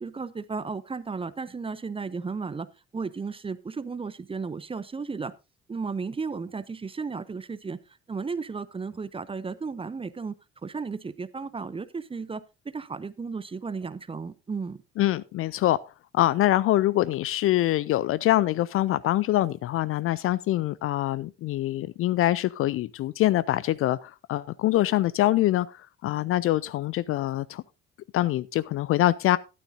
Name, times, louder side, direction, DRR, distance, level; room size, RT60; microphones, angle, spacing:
voice 1, 0.0-2.7 2.9-5.3 5.7-7.8 8.1-14.8, right 4 dB, 15° right, 0.6 m, -34 dB
voice 2, 15.0-15.8 16.1-27.6 28.1-29.4, left 15 dB, 40° left, 0.4 m, -24 dB
12.5 x 11.5 x 2.6 m
figure-of-eight pair, 50°, 33 cm